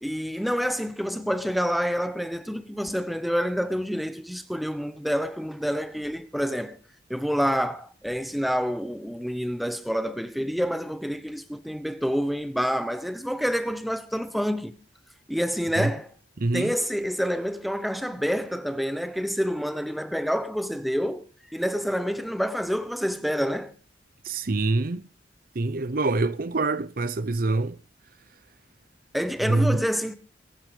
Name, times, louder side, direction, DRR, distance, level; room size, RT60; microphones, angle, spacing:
voice 1, 0.0-6.8 7.1-14.7 15.3-16.1 16.5-21.2 21.5-23.7 29.1-30.2, equal, ahead, 0.9 m, -28 dB
voice 2, 16.4-16.7 24.2-25.0 25.6-27.8 29.5-29.8, right 2 dB, 50° right, 0.6 m, -25 dB
21.0 x 9.4 x 5.1 m
head